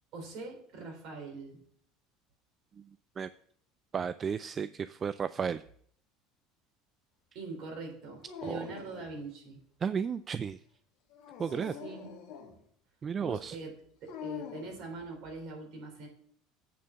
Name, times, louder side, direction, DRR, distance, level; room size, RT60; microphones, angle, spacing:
voice 1, 0.1-1.6 7.3-9.6 11.4-12.1 13.2-13.7 14.0-16.1, right 3 dB, 60° right, 2 dB, 3.3 m, -43 dB
voice 2, 3.9-5.6 8.5-8.6 9.8-10.6 11.4-11.7 13.0-13.6, right 6 dB, 35° right, 15 dB, 0.3 m, -33 dB
Dog, 8.2-9.2 11.1-12.6 14.1-14.8, left 7 dB, 65° left, 1.7 m, -44 dB
8.5 x 4.5 x 7.0 m, 0.62 s
hypercardioid pair, 75°, 0 cm